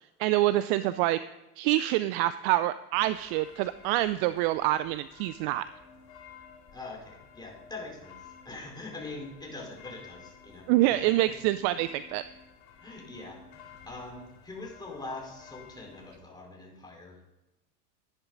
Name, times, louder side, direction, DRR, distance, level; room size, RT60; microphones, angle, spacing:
voice 1, 0.2-1.2 1.6-5.6 10.7-12.2, right 15 dB, 45° right, 14 dB, 0.5 m, -26 dB
sound 1, 2.9-16.2, left 7 dB, 50° left, 2.6 m, -53 dB
voice 2, 6.7-11.4 11.6-11.7 12.8-17.2, left 2 dB, 10° left, -1 dB, 4.6 m, -43 dB
12.0 x 11.0 x 3.9 m, 0.98 s
hypercardioid pair, 90°, 47 cm